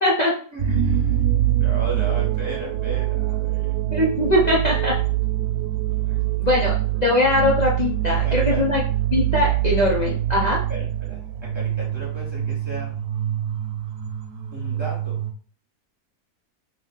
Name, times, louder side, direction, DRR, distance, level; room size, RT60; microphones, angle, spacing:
voice 1, 0.0-0.4 3.9-5.0 6.4-6.7 7.0-8.8 9.1-10.6, left 1 dB, 60° left, -3 dB, 0.4 m, -21 dB
voice 2, 0.5-1.2 1.6-3.7 6.0-6.6 8.1-8.6 10.7-12.9 14.5-15.2, right 1 dB, 20° right, -6 dB, 1.5 m, -35 dB
sound 1, 0.6-15.3, right 12 dB, 80° right, 1.1 m, -24 dB
2.9 x 2.8 x 3.6 m, 0.43 s
omnidirectional pair, 1.6 m